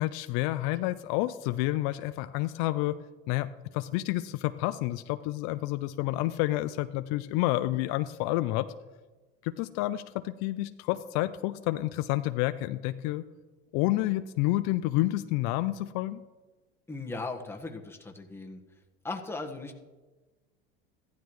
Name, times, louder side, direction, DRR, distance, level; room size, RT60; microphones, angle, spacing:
voice 1, 0.0-3.0 3.3-3.5 3.7-8.7 9.4-13.2 13.7-16.2, left 17 dB, 65° left, 12 dB, 0.5 m, -29 dB
voice 2, 16.9-18.6 19.0-19.8, left 3 dB, 10° left, 1 dB, 1.4 m, -38 dB
15.0 x 11.5 x 3.1 m, 1.2 s
supercardioid pair, 95°, 31 cm